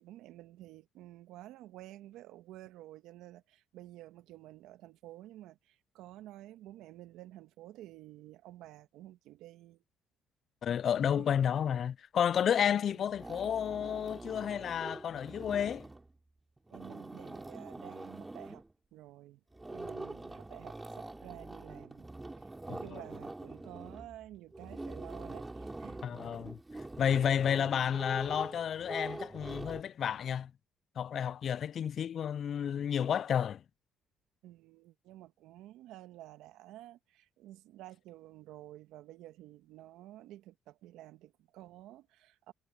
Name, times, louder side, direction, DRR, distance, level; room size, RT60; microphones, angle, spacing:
voice 1, 0.0-9.8 11.2-11.3 12.7-13.1 16.7-18.6 18.9-19.4 19.7-22.1 22.4-26.0 27.6-28.0 34.4-42.5, right 15 dB, 80° right, 1.8 m, -51 dB
voice 2, 10.6-15.9 22.7-23.0 26.0-26.6 27.0-30.5 31.0-33.6, left 8 dB, 55° left, 0.3 m, -31 dB
sound 1, 12.3-12.8 13.1-16.1 16.6-18.7 19.5-29.8, right 2 dB, 15° right, 5.7 m, -45 dB
supercardioid pair, 70°, 0 cm